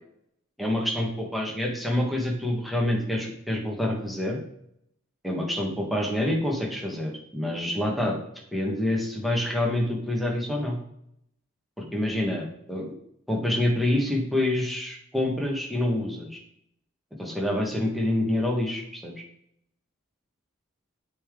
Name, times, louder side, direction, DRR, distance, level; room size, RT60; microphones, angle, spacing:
voice 1, 0.6-4.4 5.2-8.2 8.5-10.8 11.8-12.9 13.3-16.4 17.2-19.1, left 1 dB, ahead, -1 dB, 1.3 m, -27 dB
8.0 x 3.8 x 3.6 m, 0.72 s
head